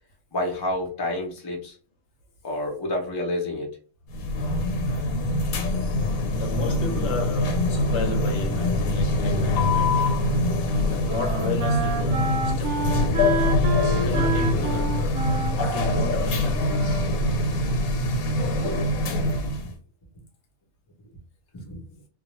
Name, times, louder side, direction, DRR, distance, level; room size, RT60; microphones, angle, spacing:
voice 1, 0.3-1.8 2.4-3.7 10.6-10.8 13.9-14.3 17.0-17.3 17.9-18.0 18.5-19.0 19.5-19.6 21.5-21.8, left 1 dB, 35° left, 0.3 m, -30 dB
sound 1, 4.1-19.7, left 2 dB, 85° left, 1.1 m, -24 dB
voice 2, 6.3-10.2 10.8-13.0 13.9-15.2 15.5-16.7, left 3 dB, 65° left, 0.8 m, -33 dB
Wind instrument woodwind instrument, 10.0-17.8, right 4 dB, 65° right, 0.9 m, -31 dB
2.3 x 2.1 x 3.0 m
omnidirectional pair, 1.5 m